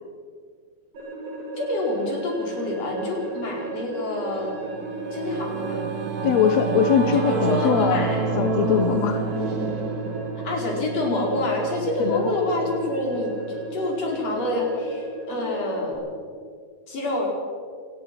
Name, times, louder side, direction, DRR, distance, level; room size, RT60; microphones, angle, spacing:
sound 1, 0.9-15.9, right 2 dB, 70° right, 9.1 m, -35 dB
voice 1, 1.6-4.6 5.1-5.8 7.1-8.3 10.4-16.2 16.9-17.3, left 2 dB, 40° left, -1 dB, 5.3 m, -27 dB
Singing / Musical instrument, 4.4-14.1, right 4 dB, 50° right, 1.2 m, -29 dB
voice 2, 6.2-8.1 8.4-9.2 12.0-12.3, left 7 dB, 65° left, 7 dB, 1.8 m, -21 dB
27.0 x 18.5 x 6.0 m, 2.1 s
omnidirectional pair, 4.4 m